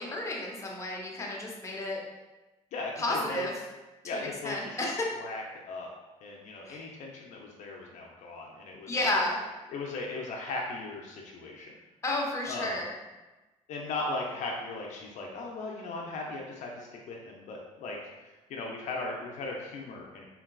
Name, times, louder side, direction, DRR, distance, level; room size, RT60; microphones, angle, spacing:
voice 1, 0.0-2.0 3.0-3.5 4.1-5.1 6.6-6.8 8.9-9.4 12.0-12.9, left 2 dB, 25° left, -2 dB, 0.6 m, -31 dB
voice 2, 2.7-3.5 4.0-4.8 5.1-5.9 6.2-9.2 9.7-11.7 12.5-12.8 13.7-18.0 18.5-20.2, left 3 dB, 65° left, -1 dB, 0.5 m, -38 dB
3.8 x 2.2 x 2.3 m, 1.1 s
cardioid pair, 100°, 13 cm